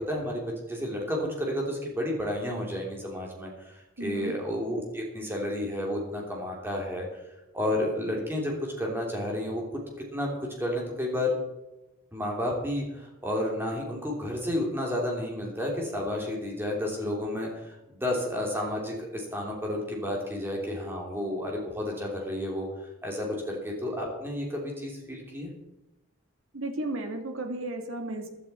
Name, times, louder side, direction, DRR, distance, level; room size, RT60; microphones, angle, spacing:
voice 1, 0.0-7.0 7.5-9.8 10.1-11.3 12.1-22.7 23.0-25.5, left 1 dB, 10° right, -1 dB, 3.0 m, -31 dB
voice 2, 4.0-4.4 26.5-28.3, right 1 dB, 75° right, 5 dB, 2.0 m, -34 dB
15.0 x 12.0 x 4.3 m, 0.98 s
head